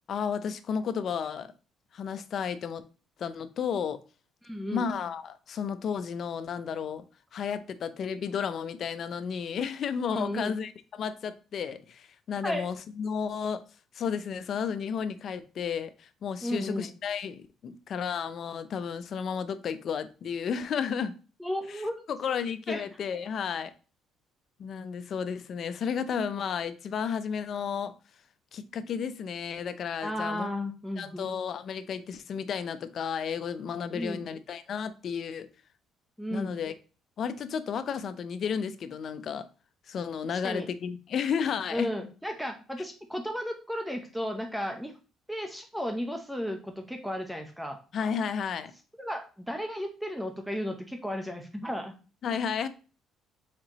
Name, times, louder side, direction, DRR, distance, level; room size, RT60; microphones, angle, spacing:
voice 1, 0.1-1.5 1.9-2.9 3.2-4.0 4.7-7.0 7.3-13.6 13.9-21.2 21.7-21.8 22.1-23.7 24.6-28.0 28.5-30.5 31.0-35.5 36.3-36.7 37.2-39.5 39.9-41.9 47.9-48.7 52.2-52.7, left 7 dB, 55° left, 0.5 m, -32 dB
voice 2, 4.4-4.9 10.1-10.5 12.4-12.7 16.4-16.9 21.4-22.1 22.7-22.8 30.0-31.3 33.9-34.2 36.2-36.5 40.2-40.7 41.7-44.9 45.3-47.8 49.0-51.9, equal, ahead, 0.7 m, -34 dB
4.5 x 3.8 x 3.0 m
cardioid pair, 100°, 0 cm